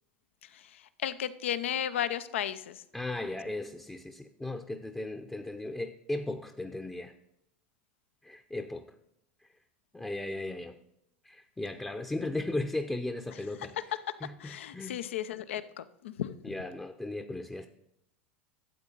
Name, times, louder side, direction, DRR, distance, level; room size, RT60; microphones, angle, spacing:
voice 1, 0.4-2.8 14.4-16.3, left 10 dB, 75° left, 13 dB, 0.7 m, -34 dB
voice 2, 2.9-7.1 8.2-8.9 9.4-9.5 9.9-10.8 11.2-13.7 14.2-15.0 16.4-17.7, left 2 dB, 10° left, 5 dB, 0.7 m, -36 dB
12.5 x 8.0 x 3.9 m, 0.77 s
hypercardioid pair, 90°, 7 cm